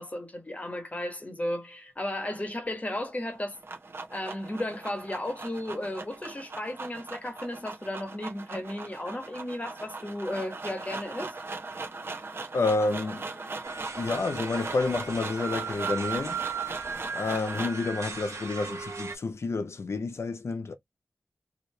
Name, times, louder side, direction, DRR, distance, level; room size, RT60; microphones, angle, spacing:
voice 1, 0.0-3.6 4.1-11.3, left 1 dB, 30° left, 1.1 m, -34 dB
sound 1, 3.3-17.9, right 3 dB, 50° right, 0.8 m, -39 dB
voice 2, 12.5-13.4 14.0-16.4 17.1-20.7, left 3 dB, 65° left, 0.5 m, -29 dB
sound 2, 13.6-19.1, right 5 dB, 85° right, 1.0 m, -36 dB
2.8 x 2.7 x 3.1 m
wide cardioid pair, 75°, 5 cm